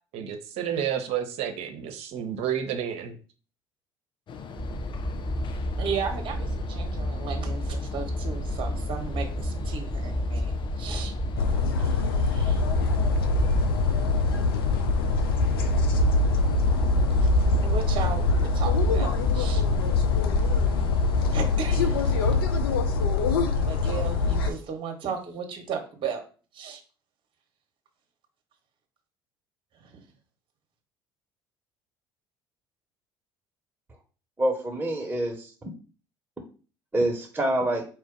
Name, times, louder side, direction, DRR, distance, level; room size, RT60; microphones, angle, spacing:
voice 1, 0.1-3.2, right 9 dB, 60° right, 7 dB, 0.8 m, -30 dB
sound 1, 4.3-22.4, left 6 dB, 40° left, 0.6 m, -40 dB
sound 2, 4.6-21.4, equal, ahead, 0.8 m, -30 dB
voice 2, 5.8-11.1 11.8-12.6 17.2-19.6 21.3-22.3 23.5-26.2 26.5-26.8 29.7-30.0, right 6 dB, 45° right, 4 dB, 1.1 m, -35 dB
sound 3, 11.4-24.5, left 3 dB, 85° left, 0.5 m, -24 dB
voice 3, 34.4-35.7 36.9-37.8, right 1 dB, 15° right, 0 dB, 1.2 m, -26 dB
4.4 x 2.5 x 3.9 m, 0.38 s
hypercardioid pair, 65°, 12 cm